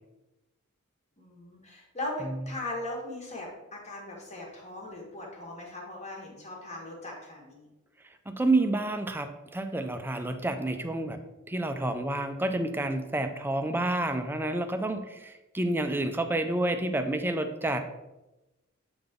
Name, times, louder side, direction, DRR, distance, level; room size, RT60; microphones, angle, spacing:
voice 1, 1.2-7.7, left 1 dB, 30° left, -1 dB, 1.5 m, -39 dB
voice 2, 8.3-11.2 11.5-17.8, right 2 dB, 10° right, 7 dB, 0.4 m, -29 dB
7.7 x 3.8 x 3.6 m, 1.0 s
head